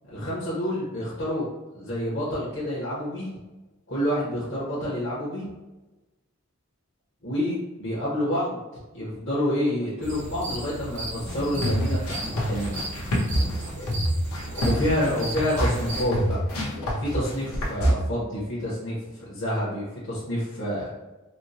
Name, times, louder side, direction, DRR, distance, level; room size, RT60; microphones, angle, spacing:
voice 1, 0.1-1.5 1.7-3.3 3.9-5.5 7.2-8.6 8.9-12.8 14.6-16.4 17.0-20.9, equal, 60° left, -9 dB, 1.0 m, -28 dB
sound 1, 10.0-16.0, right 1 dB, 35° right, 0.4 m, -36 dB
sound 2, 11.3-17.9, equal, 85° left, 0.9 m, -26 dB
4.3 x 2.1 x 2.7 m, 1.1 s
head